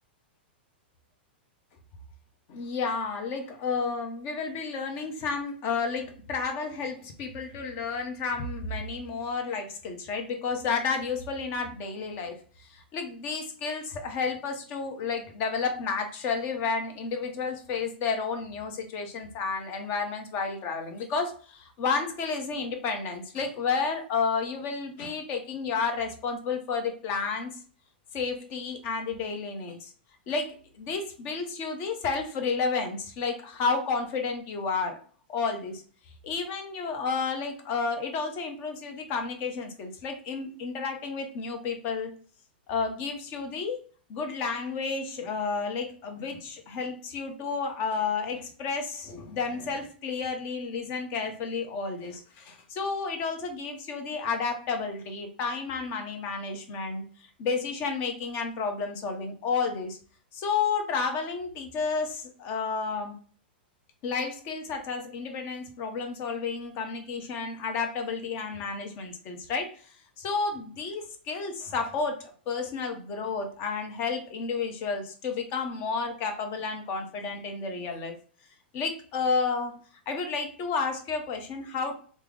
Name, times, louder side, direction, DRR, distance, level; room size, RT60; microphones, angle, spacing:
voice 1, 2.5-27.5 28.1-29.9 30.3-35.0 35.3-35.8 36.2-42.1 42.7-43.8 44.1-60.0 60.3-63.1 64.0-69.9 70.2-78.2 78.7-79.8 80.1-81.9, left 5 dB, 40° left, 5 dB, 0.8 m, -31 dB
3.3 x 2.0 x 3.4 m, 0.43 s
hypercardioid pair, 125°, 6 cm